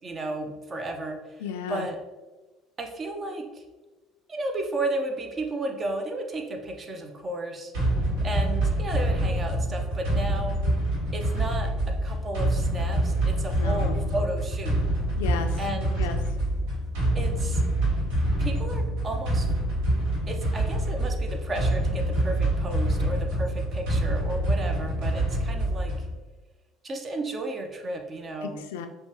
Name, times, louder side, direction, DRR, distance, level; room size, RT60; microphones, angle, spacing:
voice 1, 0.0-1.4 1.7-2.0 2.8-3.6 4.3-7.7 8.2-10.6 11.1-11.7 12.0-14.8 15.6-16.0 17.1-17.6 18.4-19.5 20.3-26.1 26.8-28.6, right 2 dB, 35° right, 5 dB, 0.7 m, -33 dB
voice 2, 1.4-1.9 13.6-14.1 15.1-15.6 16.0-16.2 28.4-28.9, left 7 dB, 80° left, 6 dB, 0.3 m, -34 dB
sound 1, 7.7-26.2, right 1 dB, 70° right, 1.3 m, -26 dB
5.4 x 2.3 x 3.0 m, 1.2 s
hypercardioid pair, 65°, 0 cm